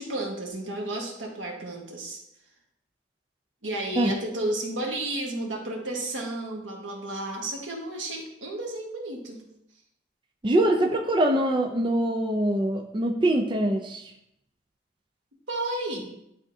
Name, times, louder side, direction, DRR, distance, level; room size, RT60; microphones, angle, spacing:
voice 1, 0.0-2.2 3.6-9.4 15.5-16.2, right 1 dB, 90° right, 0 dB, 1.4 m, -32 dB
voice 2, 10.4-14.1, right 1 dB, 25° right, 2 dB, 0.4 m, -23 dB
10.5 x 3.6 x 2.7 m, 0.80 s
head